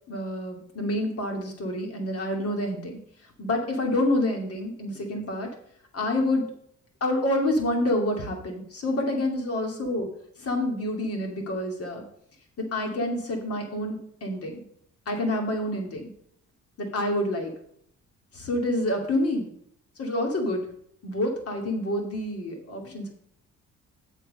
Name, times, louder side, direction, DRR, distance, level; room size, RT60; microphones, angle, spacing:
voice 1, 0.1-3.0 3.4-5.5 5.9-6.5 7.0-10.1 10.4-12.0 12.6-14.6 15.1-16.1 16.8-17.5 18.3-19.5 20.0-20.7 21.0-23.1, left 1 dB, 50° left, 2 dB, 2.7 m, -28 dB
7.9 x 6.6 x 5.3 m, 0.68 s
cardioid pair, 90°, 30 cm